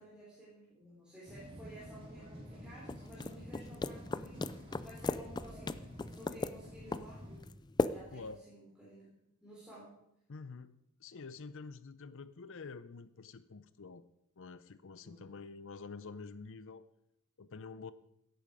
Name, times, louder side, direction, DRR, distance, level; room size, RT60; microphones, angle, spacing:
voice 1, 0.0-5.8 6.1-7.2 7.9-10.0 15.0-15.3, equal, 5° right, -7 dB, 3.6 m, -54 dB
sound 1, 1.3-7.4, equal, 25° right, 3.4 m, -50 dB
sound 2, 2.9-8.4, left 3 dB, 20° left, 0.4 m, -38 dB
voice 2, 8.1-8.4 10.3-10.7 11.0-14.0 14.4-16.9 17.4-17.9, left 4 dB, 60° left, 14 dB, 0.6 m, -48 dB
16.0 x 8.9 x 4.9 m, 0.78 s
head